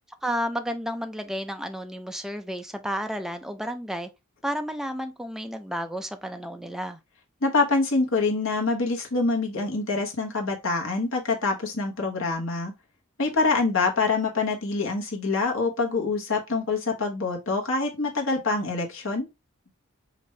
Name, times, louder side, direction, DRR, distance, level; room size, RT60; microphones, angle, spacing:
voice 1, 0.2-4.1 4.4-7.0, equal, ahead, 0.4 m, -31 dB
voice 2, 7.4-12.7 13.2-19.3, left 3 dB, 65° left, 1.2 m, -25 dB
5.0 x 2.6 x 3.2 m
head